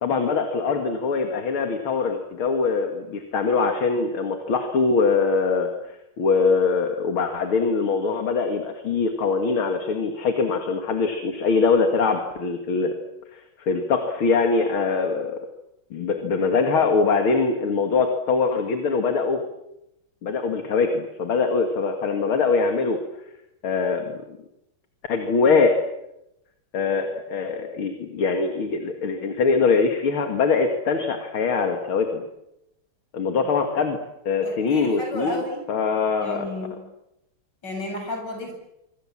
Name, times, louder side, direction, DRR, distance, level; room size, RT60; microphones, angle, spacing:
voice 1, 0.0-12.9 13.3-15.3 15.9-19.4 20.2-23.0 23.6-24.4 25.1-25.8 26.7-32.2 33.1-34.0 34.3-35.4 35.7-36.5, left 4 dB, 75° left, 5 dB, 2.9 m, -23 dB
voice 2, 34.4-35.7 36.2-36.8 37.6-38.5, left 1 dB, 55° left, 3 dB, 8.2 m, -32 dB
26.0 x 24.5 x 7.5 m, 0.86 s
omnidirectional pair, 2.3 m